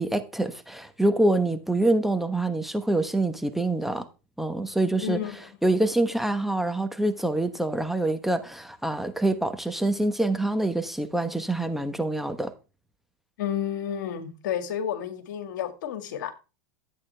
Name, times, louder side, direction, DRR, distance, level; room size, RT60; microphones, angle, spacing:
voice 1, 0.0-4.1 4.4-5.2 5.6-12.5, right 2 dB, ahead, 1.1 m, -25 dB
voice 2, 5.0-5.4 13.4-16.3, left 10 dB, 70° left, 2.0 m, -31 dB
13.0 x 8.6 x 3.4 m
hypercardioid pair, 105°, 10 cm